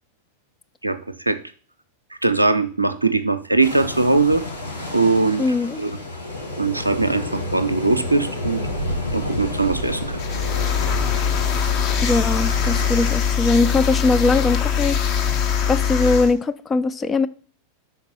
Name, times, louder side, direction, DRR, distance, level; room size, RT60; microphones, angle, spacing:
voice 1, 0.8-1.4 2.2-4.4 4.9-5.4 5.8-6.0 6.6-8.6 9.1-10.2, right 3 dB, 85° right, 0.5 m, -20 dB
sound 1, 3.6-13.2, left 1 dB, 90° left, 1.5 m, -30 dB
voice 2, 5.4-5.8 12.0-15.4 15.7-17.3, left 3 dB, 20° left, 0.4 m, -21 dB
sound 2, 10.2-16.3, left 8 dB, 40° left, 0.9 m, -22 dB
5.9 x 4.3 x 5.5 m
figure-of-eight pair, 90°, 0 cm